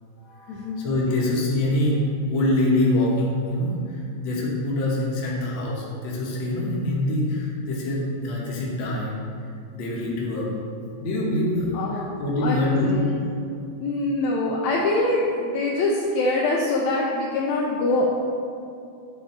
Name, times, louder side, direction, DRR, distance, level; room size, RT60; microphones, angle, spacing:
voice 1, 0.2-4.0 4.2-9.2 9.7-10.5 11.0-12.9, left 1 dB, 55° left, -4 dB, 1.5 m, -25 dB
voice 2, 11.7-12.1 12.4-13.2 13.8-18.1, left 2 dB, 75° left, -3 dB, 1.7 m, -24 dB
9.1 x 3.5 x 4.2 m, 2.5 s
omnidirectional pair, 3.5 m